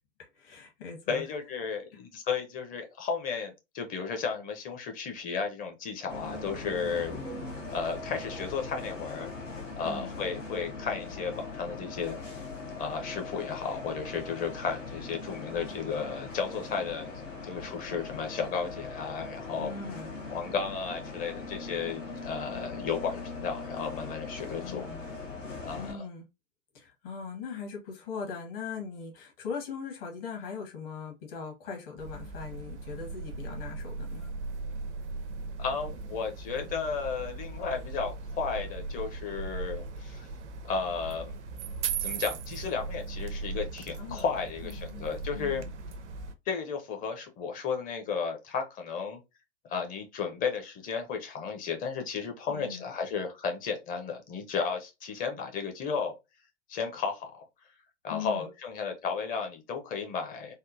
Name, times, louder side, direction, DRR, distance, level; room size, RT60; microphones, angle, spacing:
voice 1, 0.2-1.2 9.8-10.2 19.6-20.1 24.6-25.0 25.7-26.2 26.7-34.3 44.0-44.2 44.6-45.1 45.3-45.7 52.5-52.8 58.1-58.5, left 5 dB, 45° left, 1.4 m, -40 dB
voice 2, 1.1-7.2 7.7-9.3 9.8-12.2 12.8-17.1 17.4-19.7 20.3-24.8 25.6-26.0 35.6-40.3 40.6-41.3 42.0-45.6 46.5-49.2 49.6-56.1 56.7-57.4 58.0-60.5, left 5 dB, 20° left, 0.7 m, -34 dB
Bus, 6.1-25.9, left 3 dB, 80° left, 1.2 m, -40 dB
sound 1, 32.0-46.3, right 4 dB, 65° right, 0.6 m, -38 dB
3.6 x 2.1 x 2.6 m
figure-of-eight pair, 100°, 38 cm